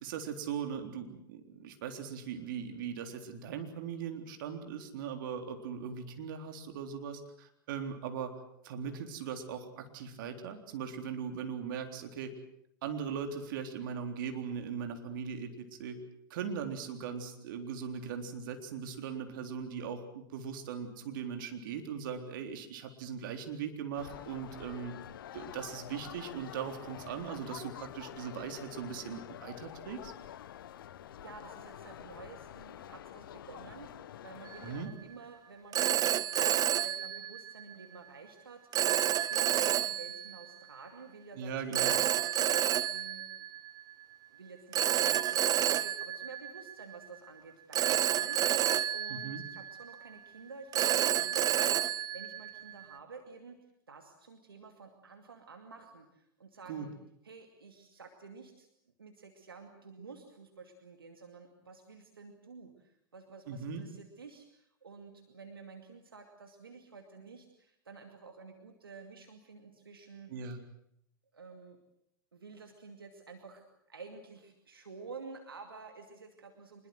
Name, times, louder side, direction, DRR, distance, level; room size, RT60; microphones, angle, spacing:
voice 1, 0.0-8.4 8.6-12.3 12.8-16.0 16.3-24.9 25.3-30.1 34.6-34.9 41.3-42.0 49.1-49.4 56.7-56.9 63.5-63.8 70.3-70.6, right 7 dB, 65° right, 6 dB, 3.8 m, -39 dB
sound 1, 24.0-34.9, left 11 dB, 70° left, 1.1 m, -47 dB
voice 2, 31.2-42.1 42.9-43.2 44.3-51.8 52.1-53.6 53.9-56.9 57.2-58.7 59.0-70.3 71.3-71.8 72.3-76.9, right 4 dB, 90° right, 5 dB, 2.5 m, -51 dB
Telephone, 34.5-34.8 35.7-37.7 38.7-40.5 41.7-43.9 44.7-47.1 47.7-50.1 50.7-52.9, right 11 dB, 35° right, 0.9 m, -30 dB
25.0 x 22.0 x 7.8 m, 0.73 s
hypercardioid pair, 90°, 12 cm